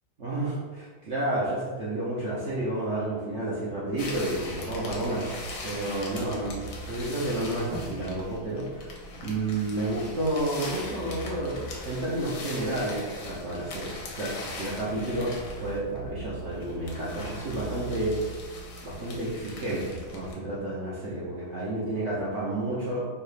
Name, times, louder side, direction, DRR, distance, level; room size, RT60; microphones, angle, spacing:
voice 1, 0.2-15.3 15.6-18.3 18.8-23.0, right 1 dB, 55° right, -8 dB, 0.8 m, -31 dB
sound 1, 4.0-20.3, left 1 dB, 60° left, 0.9 m, -39 dB
4.6 x 2.5 x 3.2 m, 1.4 s
omnidirectional pair, 2.1 m